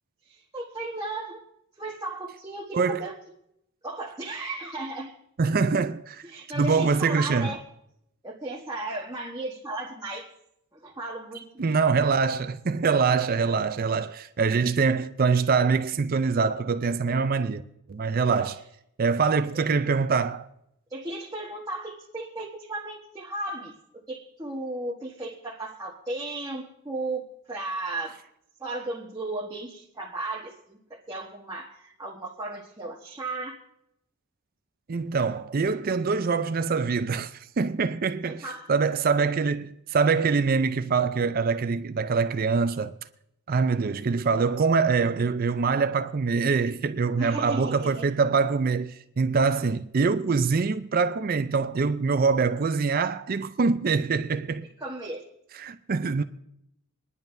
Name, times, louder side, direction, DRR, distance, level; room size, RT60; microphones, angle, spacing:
voice 1, 0.3-1.4 1.8-3.1 3.8-5.1 6.2-7.6 8.2-10.3 10.7-11.7 19.5-19.7 20.9-23.7 24.1-28.2 28.6-33.6 38.2-38.7 47.2-48.1 54.8-55.3, right 2 dB, 15° right, 1.3 m, -35 dB
voice 2, 2.7-3.1 5.4-6.2 6.5-7.6 11.6-17.6 17.9-18.6 19.0-20.5 34.9-42.9 43.5-54.7 55.6-56.2, right 5 dB, 40° right, 0.4 m, -24 dB
25.0 x 10.5 x 2.6 m
head